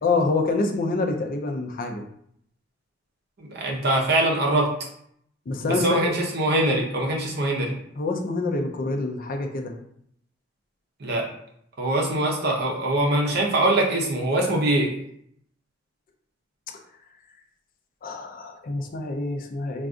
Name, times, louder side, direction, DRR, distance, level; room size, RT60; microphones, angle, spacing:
voice 1, 0.0-2.0 5.5-6.1 8.0-9.7 18.0-19.9, left 3 dB, 45° left, 3 dB, 0.4 m, -26 dB
voice 2, 3.4-4.7 5.6-7.7 11.0-11.2 11.8-14.9, right 1 dB, 55° right, -1 dB, 0.7 m, -23 dB
2.4 x 2.4 x 3.6 m, 0.69 s
head